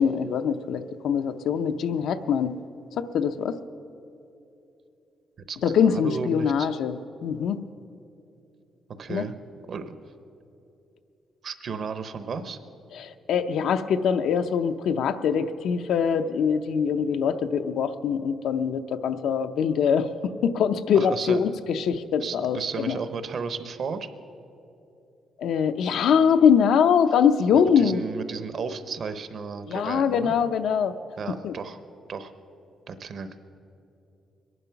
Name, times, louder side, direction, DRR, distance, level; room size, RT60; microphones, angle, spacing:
voice 1, 0.0-2.5 3.0-3.6 5.6-6.9 7.2-7.6 9.1-9.2 12.9-23.0 25.4-28.0 29.7-30.9 31.4-31.5, left 7 dB, 70° left, 9 dB, 0.6 m, -23 dB
voice 2, 5.5-6.7 9.0-9.4 9.7-10.0 11.4-12.6 20.9-21.4 22.2-24.1 27.5-30.3 31.2-31.8 32.1-32.3 32.9-33.4, right 5 dB, 45° right, 10 dB, 0.8 m, -34 dB
22.5 x 11.0 x 5.8 m, 2.8 s
cardioid pair, 175°, 0 cm